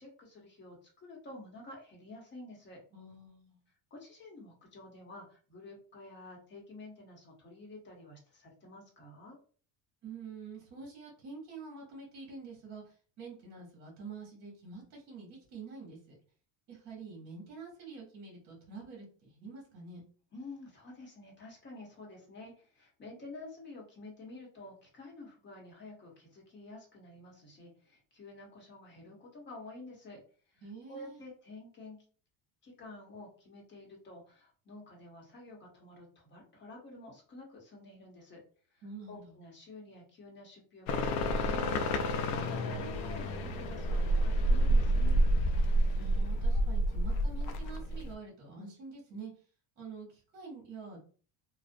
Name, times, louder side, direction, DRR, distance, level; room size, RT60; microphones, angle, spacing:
voice 1, 0.0-2.8 3.9-9.4 20.3-30.2 30.5-30.6 30.9-32.0 32.6-38.4 38.7-45.3, left 2 dB, 25° left, -1 dB, 0.9 m, -50 dB
voice 2, 2.9-3.6 10.0-16.2 16.7-20.0 30.6-31.2 38.8-39.4 46.0-49.3 49.8-51.0, right 4 dB, 45° right, -2 dB, 1.1 m, -47 dB
sound 1, 40.9-48.1, right 1 dB, 65° left, 0.5 m, -29 dB
2.4 x 2.1 x 2.5 m, 0.41 s
cardioid pair, 125°, 40 cm